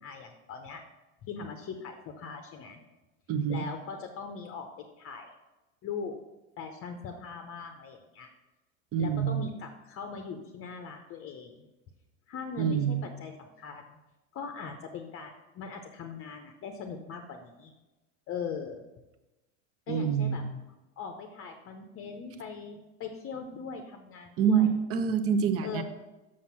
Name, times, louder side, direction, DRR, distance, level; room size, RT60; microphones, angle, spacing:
voice 1, 0.0-0.8 1.2-2.8 3.5-5.3 5.8-6.2 6.6-8.3 9.0-11.7 12.3-14.0 14.3-17.7 18.3-18.8 19.9-20.4 21.0-24.7 25.6-25.8, left 5 dB, 35° left, 4 dB, 0.7 m, -40 dB
voice 2, 3.3-3.7 8.9-9.5 12.6-13.0 19.9-20.5 24.4-25.8, right 7 dB, 35° right, 10 dB, 0.8 m, -26 dB
6.4 x 5.9 x 5.7 m, 1.1 s
supercardioid pair, 110°, 39 cm